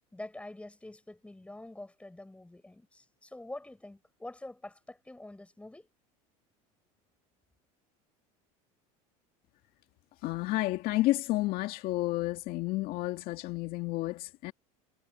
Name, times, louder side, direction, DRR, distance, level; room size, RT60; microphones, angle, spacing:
voice 1, 0.1-5.9, left 2 dB, 5° left, 7.5 m, -46 dB
voice 2, 10.2-14.5, left 18 dB, 55° left, 2.0 m, -31 dB
supercardioid pair, 115°, 18 cm